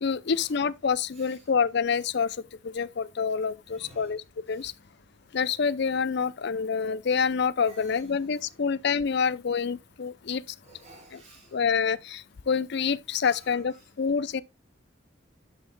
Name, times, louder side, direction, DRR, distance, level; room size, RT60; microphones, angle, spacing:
voice 1, 0.0-2.3 2.7-4.2 4.5-4.7 5.3-10.4 11.5-12.2 12.5-14.4, left 6 dB, 65° left, 0.5 m, -27 dB
voice 2, 1.1-1.5 3.6-4.2 4.5-4.7 7.6-8.6 10.6-11.6 13.2-13.9, right 1 dB, 40° right, 5.8 m, -54 dB
10.0 x 7.9 x 2.3 m
head